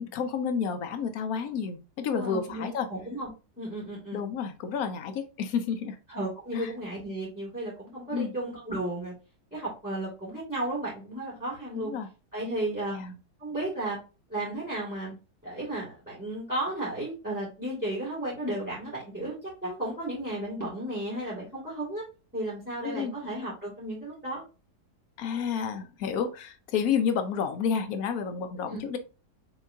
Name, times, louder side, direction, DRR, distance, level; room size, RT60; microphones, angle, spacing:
voice 1, 0.0-2.9 4.1-6.0 6.5-6.7 8.1-8.3 11.7-12.1 12.9-13.2 22.8-23.2 25.2-29.0, left 6 dB, 65° left, 7 dB, 1.1 m, -30 dB
voice 2, 2.1-3.3 3.6-4.2 6.1-9.1 9.5-11.9 12.3-13.0 13.4-14.0 14.3-15.1 15.4-22.0 22.3-24.4 28.7-28.8, right 1 dB, 5° right, -6 dB, 2.1 m, -34 dB
5.5 x 3.5 x 2.7 m, 0.32 s
omnidirectional pair, 1.8 m